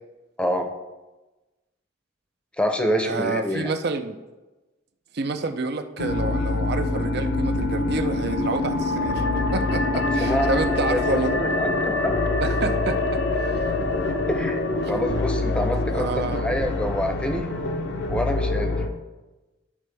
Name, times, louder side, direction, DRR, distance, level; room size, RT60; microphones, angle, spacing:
voice 1, 0.4-0.7 2.6-3.7 10.2-12.1 14.3-14.5 14.9-17.5 18.1-18.8, equal, 5° left, 4 dB, 0.7 m, -27 dB
voice 2, 3.0-4.2 5.1-9.3 9.5-11.4 12.4-13.7 15.9-16.5, right 3 dB, 60° right, 8 dB, 0.6 m, -28 dB
sound 1, 6.0-18.9, left 2 dB, 60° left, 0.6 m, -25 dB
12.0 x 4.2 x 3.4 m, 1.1 s
head